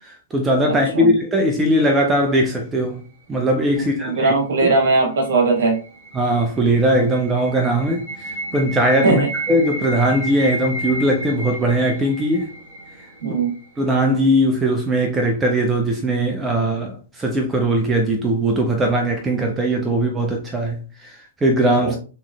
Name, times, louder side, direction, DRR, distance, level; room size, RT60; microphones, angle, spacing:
voice 1, 0.1-3.0 3.3-4.3 4.6-4.7 6.1-9.2 9.5-12.5 13.3-13.4 13.8-22.0, right 1 dB, 15° right, 0.5 m, -20 dB
voice 2, 0.7-1.1 3.7-5.8 9.0-9.3 13.2-13.5 21.8-21.9, right 3 dB, 60° right, 1.5 m, -19 dB
sound 1, 4.9-13.9, right 1 dB, 40° right, 1.4 m, -32 dB
3.7 x 3.0 x 2.3 m
figure-of-eight pair, 110°, 0 cm